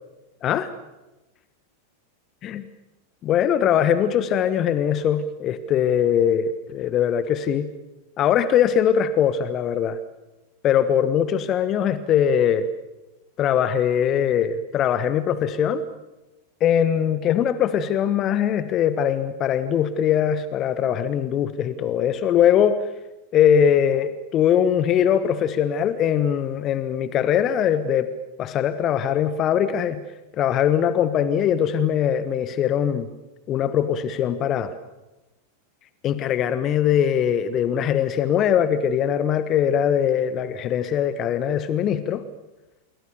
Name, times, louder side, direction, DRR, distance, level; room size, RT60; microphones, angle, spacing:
voice 1, 3.2-7.7 8.2-10.0 10.6-12.6 13.4-15.8 16.6-22.8 23.3-28.1 28.4-30.0 30.4-33.1 33.5-34.7 36.0-42.2, left 9 dB, 30° left, 13 dB, 1.2 m, -21 dB
27.0 x 23.5 x 7.0 m, 1.0 s
figure-of-eight pair, 90°, 0 cm